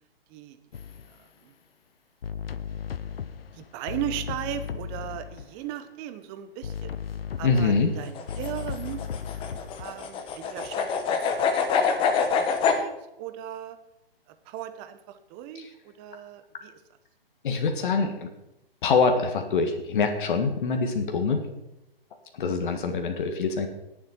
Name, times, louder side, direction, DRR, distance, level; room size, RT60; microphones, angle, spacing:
sound 1, 0.7-1.2 2.2-5.5 6.6-9.9, left 7 dB, 70° left, 0.8 m, -36 dB
voice 1, 3.5-7.0 7.4-9.0 9.8-11.5 12.0-12.9 13.2-13.8 14.3-16.7 20.8-21.0 22.7-22.8, right 12 dB, 25° right, 10 dB, 0.9 m, -37 dB
voice 2, 7.4-7.9 15.5-15.7 17.4-18.3 18.8-21.4 22.3-23.7, left 4 dB, 55° left, 5 dB, 1.8 m, -24 dB
sound 2, 8.1-12.8, left 6 dB, 20° left, 1.1 m, -25 dB
18.5 x 7.6 x 4.5 m, 0.90 s
hypercardioid pair, 135°, 30 cm